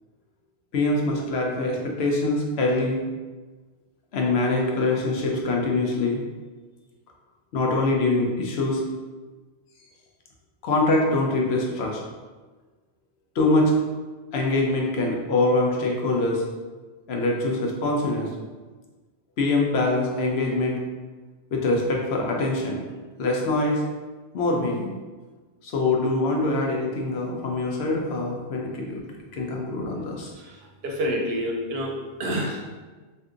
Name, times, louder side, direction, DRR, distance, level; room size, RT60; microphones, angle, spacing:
voice 1, 0.7-3.0 4.1-6.2 7.5-8.8 10.6-12.0 13.4-13.7 14.3-16.4 17.1-18.3 19.4-20.8 21.5-22.8 23.2-23.8 24.3-24.9 25.6-29.0 29.3-30.3, left 2 dB, 70° left, -1 dB, 0.9 m, -24 dB
voice 2, 30.8-31.9 32.2-32.6, equal, 70° right, -1 dB, 0.8 m, -27 dB
2.7 x 2.5 x 3.5 m, 1.3 s
omnidirectional pair, 1.1 m